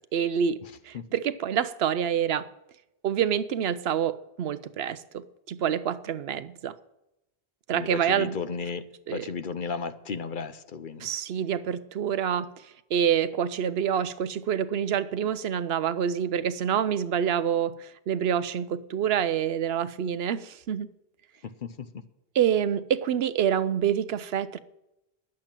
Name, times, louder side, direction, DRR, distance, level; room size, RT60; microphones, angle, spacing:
voice 1, 0.1-2.5 3.0-6.7 7.7-8.3 9.1-9.3 11.0-12.5 12.9-20.9 22.3-24.6, right 8 dB, 75° right, 0.8 m, -27 dB
voice 2, 7.7-8.9 9.1-11.1 21.4-21.9, left 5 dB, 55° left, 0.8 m, -34 dB
10.5 x 7.7 x 8.9 m
omnidirectional pair, 1.1 m